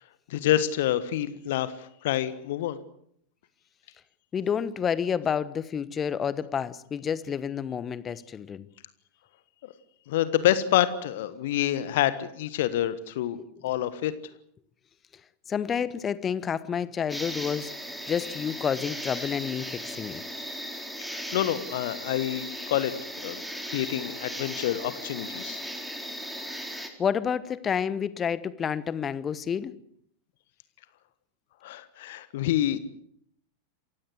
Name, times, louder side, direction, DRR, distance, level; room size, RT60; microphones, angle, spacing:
voice 1, 0.3-2.8 10.1-13.4 13.6-14.1 21.3-22.9 23.2-25.6 31.6-32.8, left 12 dB, 55° left, 14 dB, 1.4 m, -27 dB
voice 2, 4.3-8.7 13.4-13.5 15.5-20.2 27.0-29.7, left 7 dB, 20° left, 17 dB, 1.3 m, -29 dB
sound 1, 17.1-26.9, equal, ahead, 3.8 m, -37 dB
28.0 x 16.0 x 7.9 m, 0.67 s
figure-of-eight pair, 90°, 0 cm